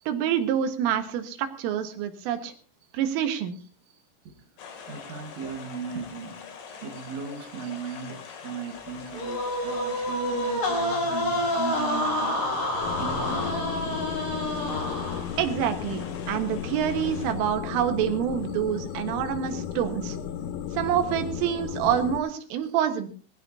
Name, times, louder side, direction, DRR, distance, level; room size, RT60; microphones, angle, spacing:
voice 1, 0.1-2.5 2.9-3.6 15.4-20.2 20.7-23.1, right 9 dB, 80° right, 4.0 m, -27 dB
sound 1, 4.6-17.3, left 6 dB, 65° left, 4.6 m, -44 dB
voice 2, 4.9-6.5 6.8-13.9, right 6 dB, 60° right, 1.9 m, -37 dB
sound 2, 9.1-15.5, left 1 dB, 45° left, 5.3 m, -28 dB
sound 3, 12.8-22.2, left 8 dB, 85° left, 3.6 m, -34 dB
20.0 x 16.5 x 2.8 m
omnidirectional pair, 5.8 m